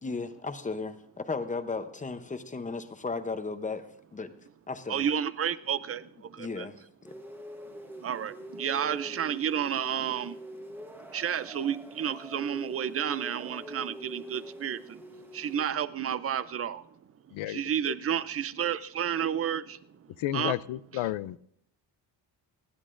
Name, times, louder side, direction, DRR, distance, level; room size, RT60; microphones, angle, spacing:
voice 1, 0.0-4.3 4.7-5.1 6.4-6.8, left 4 dB, 15° left, 0.7 m, -35 dB
voice 2, 4.9-6.7 8.0-10.4 11.1-15.0 15.3-16.8 17.5-19.8 20.3-20.6 20.9-21.0, right 9 dB, 35° right, 0.4 m, -31 dB
sound 1, 7.0-15.6, equal, 5° right, 1.0 m, -45 dB
voice 3, 17.3-17.9 20.2-21.4, left 14 dB, 85° left, 0.6 m, -32 dB
29.5 x 10.5 x 2.5 m
wide cardioid pair, 165°, 46 cm